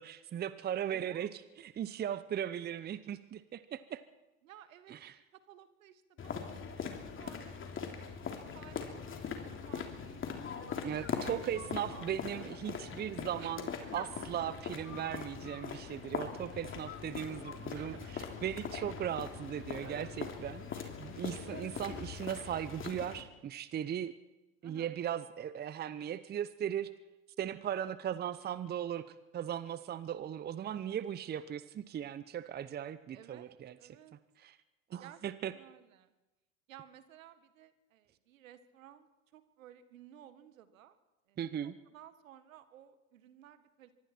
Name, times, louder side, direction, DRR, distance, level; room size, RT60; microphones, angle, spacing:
voice 1, 0.0-4.0 4.9-5.2 10.8-24.1 24.6-26.9 27.4-29.0 29.3-33.8 34.4-34.6 34.9-35.5 41.4-41.8, right 10 dB, 25° right, 15 dB, 0.9 m, -38 dB
voice 2, 0.9-1.3 4.4-4.9 5.3-6.5 7.2-11.3 11.6-12.5 13.4-14.1 16.7-16.8 17.7-18.1 19.8-20.1 24.6-25.0 33.1-34.2 35.0-35.2 35.5-36.1 36.7-41.0 41.3-43.9, right 11 dB, 70° right, 12 dB, 1.8 m, -55 dB
sound 1, 6.2-23.2, left 6 dB, 30° left, 3.2 m, -41 dB
24.5 x 23.5 x 4.5 m, 1.0 s
hypercardioid pair, 85°, 41 cm